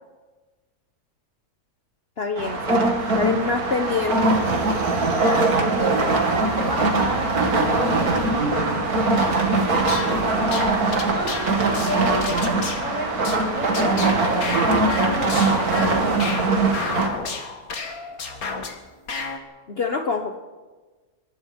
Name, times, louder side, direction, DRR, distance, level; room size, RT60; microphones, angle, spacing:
voice 1, 2.2-2.9 3.2-4.3 19.7-20.4, left 5 dB, 45° left, 6 dB, 1.3 m, -25 dB
sound 1, 2.4-17.1, right 3 dB, 75° right, 2.8 m, -21 dB
voice 2, 5.7-9.3 9.7-10.2 10.6-10.8 11.1-13.1 13.5-16.2, right 1 dB, 30° right, -3 dB, 8.4 m, -31 dB
sound 2, 9.8-18.8 19.1-19.4, left 4 dB, 70° left, 2.3 m, -32 dB
24.5 x 20.0 x 5.3 m, 1.3 s
omnidirectional pair, 1.6 m